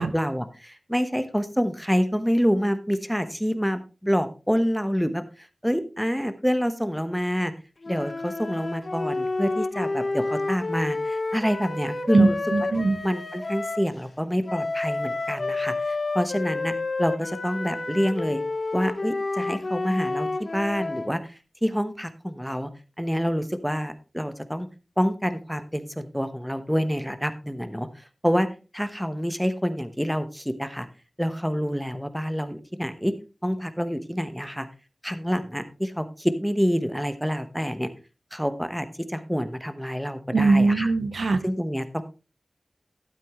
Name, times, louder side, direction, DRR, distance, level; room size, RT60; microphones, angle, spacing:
voice 1, 0.1-5.3 5.6-7.5 7.9-12.4 13.0-18.4 18.7-22.7 23.0-24.7 25.0-27.9 28.2-28.5 28.7-30.9 31.2-33.1 33.4-34.7 35.0-37.9 38.3-40.9 41.4-42.0, equal, ahead, 10 dB, 1.1 m, -27 dB
sound 1, 7.8-13.9 14.5-21.1, left 3 dB, 60° left, 0.9 m, -29 dB
voice 2, 12.1-13.0 40.3-41.4, right 3 dB, 85° right, 10 dB, 0.9 m, -21 dB
12.0 x 8.5 x 3.1 m, 0.31 s
wide cardioid pair, 55°, 0 cm